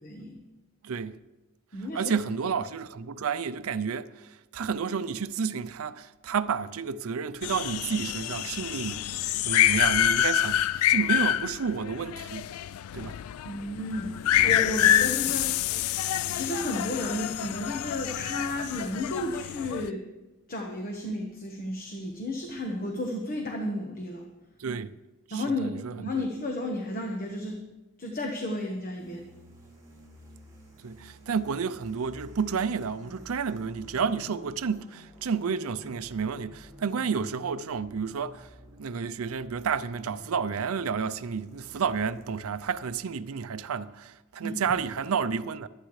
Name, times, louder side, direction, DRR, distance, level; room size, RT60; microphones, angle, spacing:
voice 1, 0.0-0.4 1.7-2.1 13.4-15.6 16.2-20.0 20.5-24.3 25.3-27.6 28.0-29.3 44.4-44.5, left 1 dB, 40° left, 1.2 m, -33 dB
voice 2, 0.8-1.2 1.9-12.5 12.9-13.2 24.6-25.0 25.3-26.3 30.8-38.5 38.8-45.7, right 6 dB, 70° right, 0.5 m, -31 dB
sound 1, 7.4-19.9, left 12 dB, 70° left, 0.3 m, -27 dB
sound 2, 29.0-42.6, equal, 15° right, 4.1 m, -51 dB
23.0 x 9.1 x 3.2 m
head